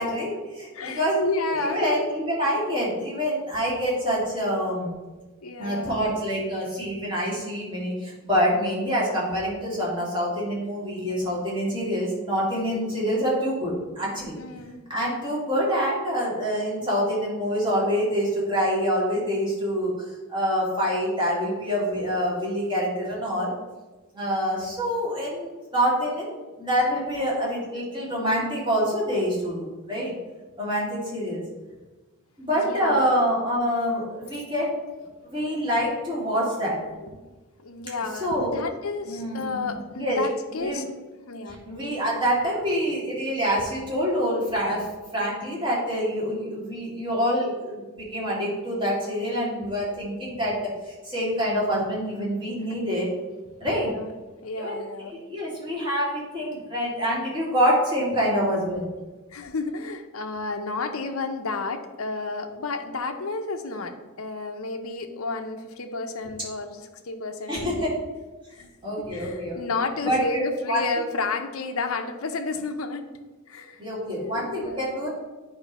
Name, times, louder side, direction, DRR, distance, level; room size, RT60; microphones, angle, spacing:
voice 1, 0.0-1.2 1.6-4.9 5.6-14.4 14.9-19.9 20.3-23.5 24.1-30.1 30.6-31.4 32.4-34.7 35.3-36.8 38.2-38.6 39.0-40.2 40.5-40.8 41.5-44.9 45.1-50.6 50.8-53.1 53.6-53.9 54.6-54.8 55.3-58.9 67.5-67.9 68.8-69.6 70.0-70.4 70.7-70.8 73.8-75.1, equal, 20° right, -6 dB, 2.4 m, -26 dB
voice 2, 0.7-1.9 5.4-6.0 14.4-14.8 32.5-33.1 37.0-37.3 37.6-40.8 41.3-41.6 52.7-52.8 53.7-54.1 54.4-55.1 59.3-67.9 68.5-68.7 69.0-73.1 73.5-73.8 74.2-74.9, left 3 dB, 70° left, 6 dB, 0.7 m, -31 dB
9.1 x 3.3 x 5.4 m, 1.2 s
head